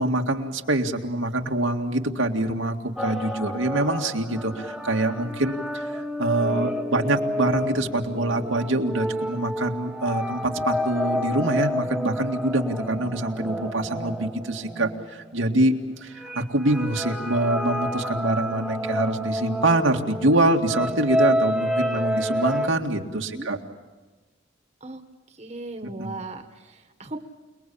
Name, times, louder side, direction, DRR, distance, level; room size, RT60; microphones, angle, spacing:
voice 1, 0.0-15.8 16.0-23.6 25.8-26.1, right 1 dB, 85° right, 2 dB, 2.2 m, -25 dB
sound 1, 3.0-15.5 16.2-22.7, left 1 dB, ahead, 1.2 m, -29 dB
voice 2, 25.4-27.2, right 2 dB, 35° right, 6 dB, 1.6 m, -37 dB
29.0 x 21.0 x 8.6 m, 1.3 s
head